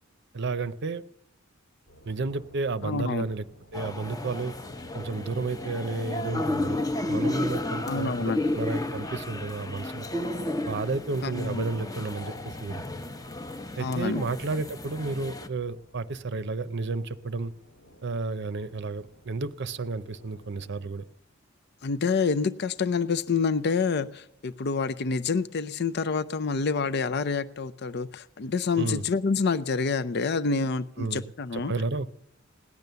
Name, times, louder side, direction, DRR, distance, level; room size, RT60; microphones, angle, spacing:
voice 1, 0.3-1.0 2.1-3.4 3.7-4.5 4.9-6.8 7.1-10.1 10.7-12.4 12.6-12.8 13.8-17.5 18.0-21.0 28.8-29.0 31.0-32.1, right 3 dB, 60° right, 12 dB, 0.6 m, -32 dB
sound 1, 1.9-21.0, left 1 dB, 75° left, 1.9 m, -55 dB
voice 2, 2.8-3.2 7.8-8.4 11.2-11.7 13.8-14.2 21.8-31.7, left 4 dB, 55° left, 14 dB, 0.5 m, -27 dB
sound 2, 3.7-15.5, left 2 dB, 20° left, 0.9 m, -33 dB
18.0 x 10.5 x 6.8 m, 0.80 s
head